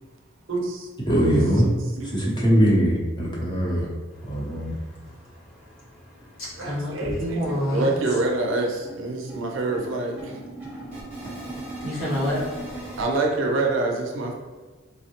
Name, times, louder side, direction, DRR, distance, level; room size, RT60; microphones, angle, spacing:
voice 1, 0.5-0.9 1.2-2.2 6.6-10.4 13.0-14.3, right 2 dB, 70° right, 0 dB, 0.5 m, -26 dB
voice 2, 1.1-1.7 2.1-3.9 4.3-4.7, equal, 20° left, -5 dB, 0.7 m, -21 dB
voice 3, 4.1-8.2 11.6-13.0, left 1 dB, 85° left, -8 dB, 1.4 m, -31 dB
sound 1, 6.2-6.3 6.6-6.8 7.1-13.0, right 2 dB, 5° right, 0.9 m, -39 dB
3.5 x 2.0 x 2.8 m, 1.3 s
head